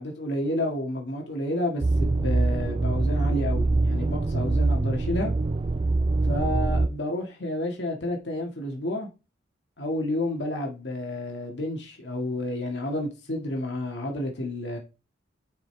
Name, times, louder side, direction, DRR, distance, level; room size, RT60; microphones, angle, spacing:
voice 1, 0.0-5.3 6.3-9.1 9.8-14.8, left 1 dB, 65° left, 1.8 m, -30 dB
sound 1, 1.8-6.9, right 2 dB, 30° right, 0.3 m, -24 dB
10.5 x 5.1 x 3.3 m
head